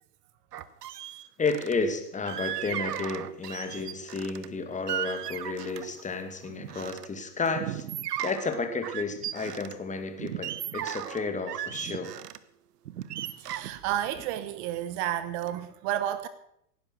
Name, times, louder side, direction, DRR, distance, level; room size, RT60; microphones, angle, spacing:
sound 1, 0.5-1.7 2.3-4.5 4.9-6.0 6.4-7.1 7.5-9.7 10.2-12.4 12.9-15.1 15.4-15.6, right 11 dB, 75° right, 1.1 m, -36 dB
voice 1, 1.4-7.9 8.2-12.2, left 4 dB, 15° left, 2.2 m, -32 dB
voice 2, 13.4-16.3, right 12 dB, 45° right, 1.1 m, -31 dB
17.5 x 10.5 x 6.3 m
hypercardioid pair, 105°, 47 cm